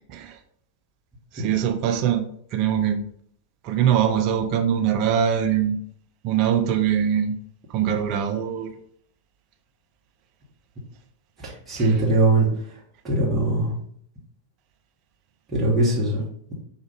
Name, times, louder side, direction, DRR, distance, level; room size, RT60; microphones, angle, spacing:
voice 1, 1.3-2.2 2.5-3.0 3.6-5.8 6.2-7.3 7.7-8.7 11.8-12.0, right 9 dB, 40° right, 6 dB, 0.5 m, -22 dB
voice 2, 11.4-12.8 13.0-13.7 15.5-16.2, right 2 dB, 20° right, -6 dB, 1.3 m, -21 dB
4.9 x 2.6 x 3.4 m, 0.63 s
figure-of-eight pair, 90°, 0 cm